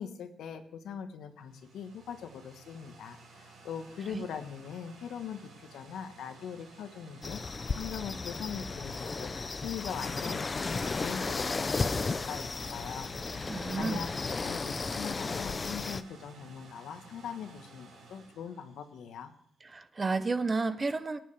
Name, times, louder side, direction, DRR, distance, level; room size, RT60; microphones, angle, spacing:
voice 1, 0.0-14.1 14.4-19.3, left 7 dB, 85° left, 1.3 m, -42 dB
sound 1, 1.2-19.3, right 3 dB, 75° right, 4.4 m, -54 dB
sound 2, 7.2-16.0, left 4 dB, 25° left, 0.4 m, -34 dB
voice 2, 13.5-14.0 19.6-21.2, right 3 dB, 25° right, 0.6 m, -31 dB
23.5 x 9.2 x 3.4 m
cardioid pair, 150°, 0 cm